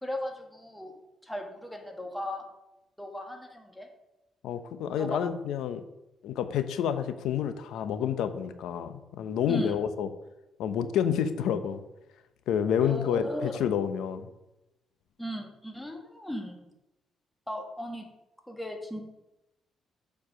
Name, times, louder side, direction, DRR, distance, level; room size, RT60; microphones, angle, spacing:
voice 1, 0.0-0.9 1.2-2.4 3.0-3.9 5.0-5.2 9.5-9.7 12.8-13.5 15.2-16.6 17.5-18.1 18.5-19.0, equal, 5° left, 2 dB, 1.6 m, -37 dB
voice 2, 4.4-5.8 6.2-10.1 10.6-11.8 12.5-14.3, left 8 dB, 85° left, 10 dB, 0.7 m, -29 dB
7.1 x 4.7 x 6.0 m, 0.93 s
cardioid pair, 90°, 0 cm